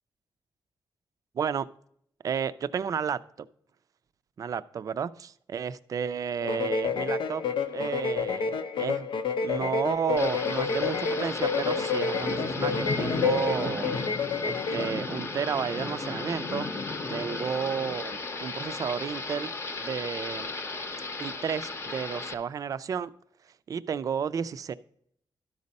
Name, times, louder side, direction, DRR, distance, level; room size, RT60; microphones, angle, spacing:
voice 1, 1.3-1.7 2.2-3.2 4.4-7.4 7.7-9.1 9.4-13.9 14.4-16.7 17.1-19.5 19.8-20.5 21.2-23.1 23.7-24.7, right 7 dB, 45° right, 15 dB, 0.4 m, -32 dB
sound 1, 6.4-15.0, left 5 dB, 85° left, 0.7 m, -29 dB
Thunder / Rain, 10.2-22.3, left 3 dB, 35° left, 0.7 m, -34 dB
12.5 x 5.3 x 4.0 m, 0.67 s
wide cardioid pair, 175°, 8 cm